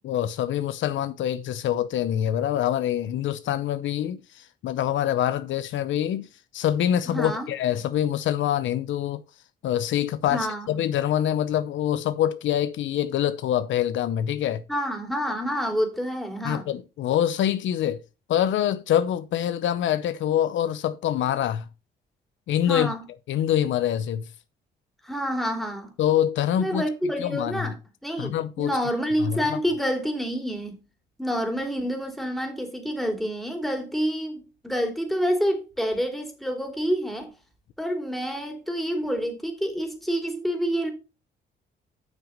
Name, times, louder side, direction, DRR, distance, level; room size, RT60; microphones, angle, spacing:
voice 1, 0.0-6.3 6.5-9.2 9.6-14.6 16.4-18.0 18.3-21.7 22.5-22.9 23.3-24.3 26.0-26.8 27.2-27.7 28.2-28.8 29.2-29.6, left 11 dB, 75° left, 0.7 m, -25 dB
voice 2, 7.1-7.5 10.3-10.7 14.7-16.7 22.7-23.0 25.0-25.9 26.6-27.8 28.0-30.8 31.2-37.3 37.8-40.9, equal, ahead, 3.0 m, -28 dB
7.5 x 6.2 x 5.3 m
cardioid pair, 90°, 20 cm